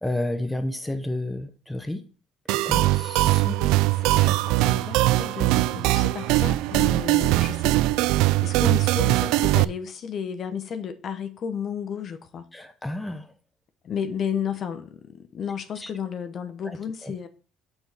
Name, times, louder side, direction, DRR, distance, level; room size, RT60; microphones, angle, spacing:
voice 1, 0.0-2.0 2.6-3.5 12.5-13.3 15.8-15.9 16.6-17.3, left 1 dB, 5° left, 0.9 m, -31 dB
sound 1, 2.5-9.6, right 18 dB, 85° right, 0.3 m, -21 dB
voice 2, 3.5-8.1 8.4-12.5 13.8-17.3, left 7 dB, 40° left, 0.9 m, -33 dB
7.0 x 6.3 x 3.5 m
cardioid pair, 140°, 0 cm